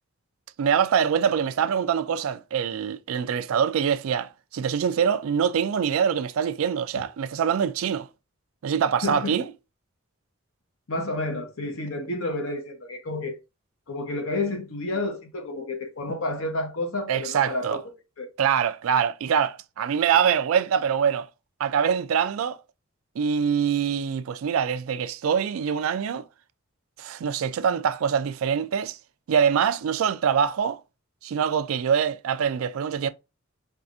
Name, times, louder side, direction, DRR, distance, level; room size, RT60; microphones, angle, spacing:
voice 1, 0.6-8.1 8.6-9.4 17.1-17.8 18.4-21.3 21.6-22.6 23.2-26.2 27.0-29.0 29.3-30.8 31.2-33.1, right 7 dB, 75° right, 0.3 m, -24 dB
voice 2, 9.0-9.4 10.9-13.4 13.9-17.8 18.2-18.3, left 2 dB, 75° left, 0.9 m, -30 dB
4.6 x 2.4 x 2.6 m
head